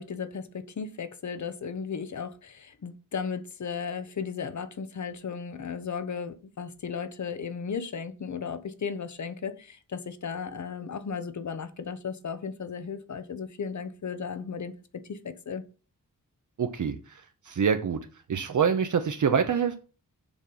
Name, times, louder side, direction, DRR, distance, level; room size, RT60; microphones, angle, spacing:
voice 1, 0.0-15.6, left 6 dB, 55° left, 1.0 m, -35 dB
voice 2, 16.6-17.2 17.5-18.0 18.3-19.8, right 6 dB, 60° right, 0.8 m, -25 dB
7.2 x 5.3 x 5.7 m
wide cardioid pair, 125°, 34 cm